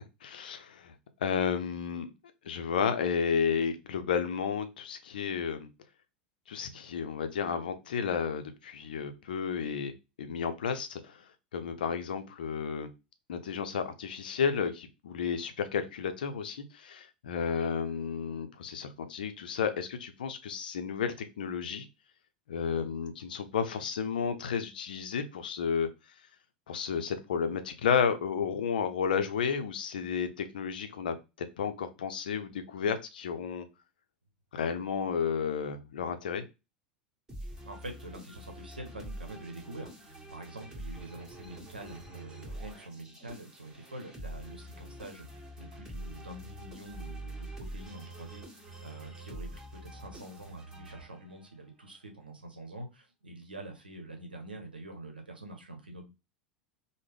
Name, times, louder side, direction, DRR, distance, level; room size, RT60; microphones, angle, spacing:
voice 1, 0.2-0.9 1.2-2.1 2.4-5.7 6.5-9.9 10.2-11.2 11.5-12.9 13.3-21.9 22.5-25.9 26.7-33.7 34.5-36.4, left 6 dB, 70° left, 9 dB, 0.5 m, -32 dB
sound 1, 37.3-51.5, right 1 dB, 15° right, 1.4 m, -45 dB
voice 2, 37.4-56.0, right 1 dB, 85° right, 3 dB, 0.8 m, -46 dB
3.5 x 2.0 x 3.3 m, 0.26 s
figure-of-eight pair, 85°, 5 cm